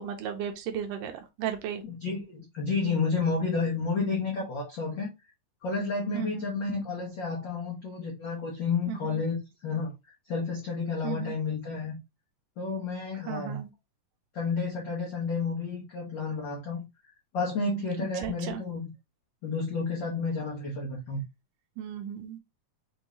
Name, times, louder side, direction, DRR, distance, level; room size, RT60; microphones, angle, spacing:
voice 1, 0.0-1.8 6.1-6.5 8.9-9.3 11.0-11.4 13.3-13.7 18.2-18.6 21.8-22.4, right 9 dB, 85° right, 2.3 m, -35 dB
voice 2, 1.8-5.1 5.6-9.9 10.3-11.9 12.6-13.6 14.3-16.8 17.3-18.9 19.4-21.2, left 4 dB, 70° left, 1.0 m, -31 dB
6.2 x 2.7 x 3.0 m
omnidirectional pair, 3.7 m